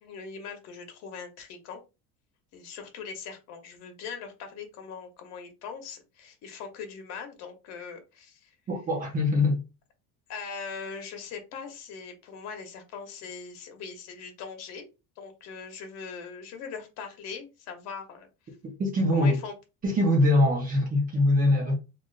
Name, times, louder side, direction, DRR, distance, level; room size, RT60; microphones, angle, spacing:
voice 1, 0.0-1.8 2.5-8.5 10.3-14.8 15.2-18.3 19.1-19.5, left 5 dB, 55° left, 1.0 m, -41 dB
voice 2, 8.7-9.6 18.6-19.4 19.8-21.7, left 1 dB, 25° right, 0.8 m, -23 dB
3.4 x 2.5 x 2.5 m
cardioid pair, 150°, 31 cm